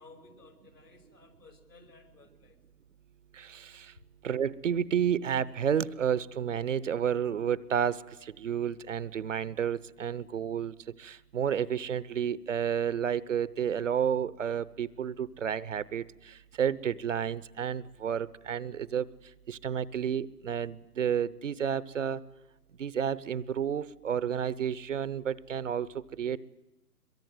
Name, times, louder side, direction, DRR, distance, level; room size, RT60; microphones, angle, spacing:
voice 1, 0.0-2.6, left 3 dB, 85° left, 5 dB, 6.2 m, -56 dB
voice 2, 3.3-3.9 4.2-19.1 19.5-22.2 22.8-26.4, right 8 dB, 55° right, 19 dB, 0.9 m, -31 dB
22.5 x 22.5 x 9.2 m, 0.98 s
figure-of-eight pair, 145°, 46 cm